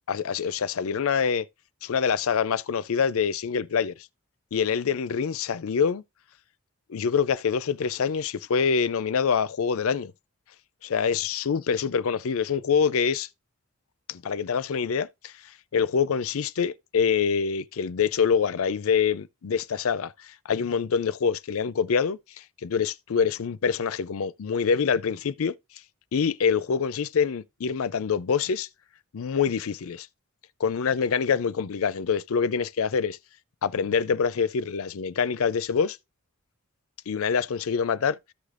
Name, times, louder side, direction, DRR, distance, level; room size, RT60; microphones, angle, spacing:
voice 1, 0.1-1.5 1.8-3.9 4.5-6.0 6.9-10.1 10.8-13.3 14.1-15.3 15.7-25.5 26.1-28.7 29.1-30.1 30.6-33.2 33.6-36.0 37.1-38.2, left 6 dB, 70° left, 0.4 m, -25 dB
14.0 x 5.0 x 2.5 m
head